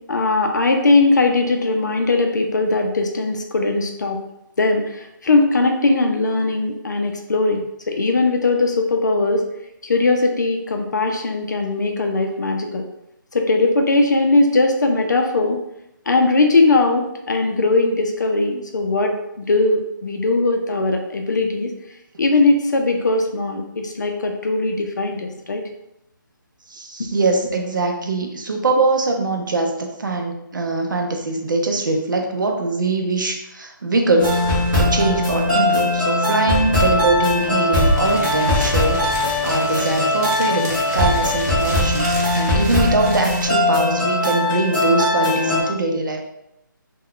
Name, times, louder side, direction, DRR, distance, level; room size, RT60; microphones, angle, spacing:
voice 1, 0.1-4.2 4.6-7.6 7.9-9.5 9.8-12.8 13.3-15.6 16.1-21.7 22.2-25.6, left 3 dB, 55° left, 3 dB, 0.5 m, -19 dB
voice 2, 26.7-34.4 34.8-39.0 39.4-46.3, right 3 dB, 65° right, 2 dB, 0.5 m, -22 dB
sound 1, 34.2-45.6, left 1 dB, 5° right, 0.4 m, -20 dB
sound 2, 37.4-37.5 37.7-43.5, equal, 45° right, 0.9 m, -29 dB
2.3 x 2.2 x 3.6 m, 0.83 s
hypercardioid pair, 175°, 11 cm